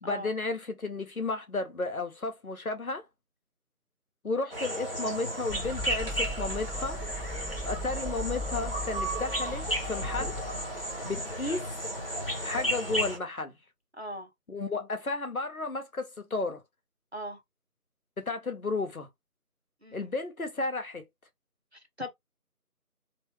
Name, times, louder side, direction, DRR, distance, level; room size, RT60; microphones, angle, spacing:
voice 1, 0.0-3.0 4.2-7.0 7.6-10.3 11.0-11.7 12.4-13.5 14.5-16.6 18.2-19.1 19.9-21.0, left 3 dB, 65° left, 1.0 m, -33 dB
sound 1, 4.5-13.2, equal, 35° left, 1.1 m, -33 dB
sound 2, 5.5-11.5, equal, 5° right, 0.3 m, -39 dB
voice 2, 14.0-14.3 17.1-17.4 19.8-20.1 21.7-22.1, equal, 45° right, 0.8 m, -39 dB
3.0 x 2.1 x 3.1 m
figure-of-eight pair, 175°, 46 cm